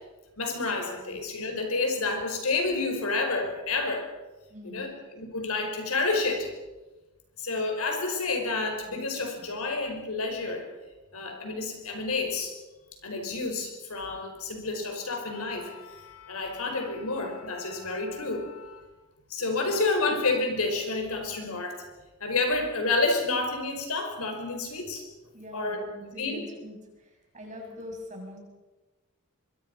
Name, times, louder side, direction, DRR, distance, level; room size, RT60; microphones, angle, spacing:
voice 1, 0.4-4.1 4.6-6.5 7.4-10.7 11.1-12.6 13.0-18.8 19.3-21.8 22.2-25.0 25.5-25.8 26.2-26.4, left 3 dB, 70° left, 4 dB, 5.3 m, -29 dB
voice 2, 4.5-4.9 25.3-28.4, left 1 dB, 35° right, 1 dB, 6.6 m, -43 dB
25.0 x 23.5 x 5.5 m, 1.1 s
head